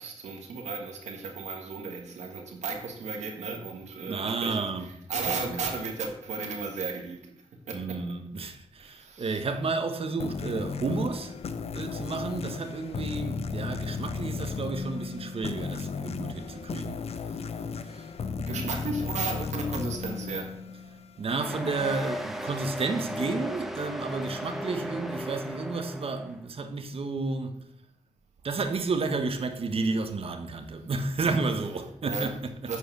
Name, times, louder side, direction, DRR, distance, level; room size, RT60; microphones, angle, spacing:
voice 1, 0.0-7.3 7.7-8.0 8.8-9.4 18.4-20.5 32.0-32.4 32.7-32.8, right 4 dB, 90° right, 1.6 m, -34 dB
voice 2, 4.1-5.6 7.7-11.3 11.7-17.0 17.9-18.1 21.2-27.6 28.4-32.8, right 3 dB, 55° right, 1.2 m, -31 dB
sound 1, 10.2-21.4, left 5 dB, 65° left, 0.7 m, -35 dB
sound 2, 21.3-26.4, equal, ahead, 1.1 m, -36 dB
8.4 x 4.8 x 6.0 m
cardioid pair, 65°, 11 cm